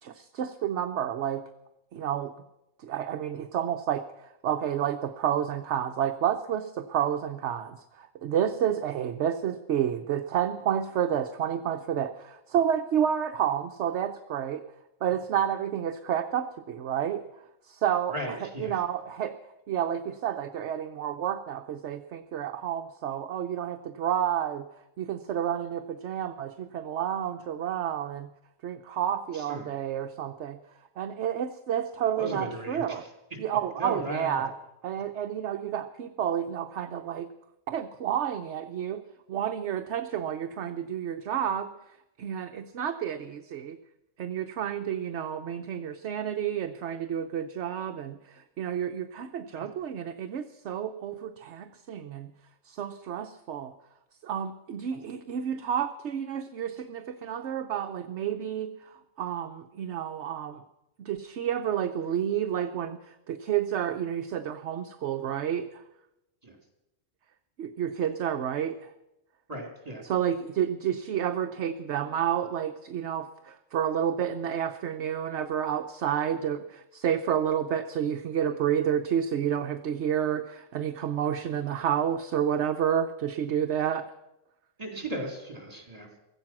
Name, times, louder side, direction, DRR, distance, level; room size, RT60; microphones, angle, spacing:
voice 1, 0.0-1.4 1.9-2.3 2.8-14.6 15.0-17.2 17.7-19.3 19.7-24.6 25.0-28.3 28.6-30.6 31.0-33.1 33.4-34.5 34.8-37.3 37.7-39.0 39.3-41.7 42.2-43.8 44.2-52.3 52.7-53.7 54.2-60.6 61.0-63.0 63.3-65.8 67.6-68.9 70.0-84.0, right 9 dB, 65° right, 7 dB, 1.0 m, -30 dB
voice 2, 18.1-18.8 29.3-29.7 32.2-33.1 33.8-34.5 49.5-49.6 66.4-66.6 69.5-70.0 84.8-86.2, right 1 dB, 30° right, 2 dB, 3.4 m, -36 dB
16.5 x 14.5 x 6.0 m, 0.92 s
omnidirectional pair, 1.3 m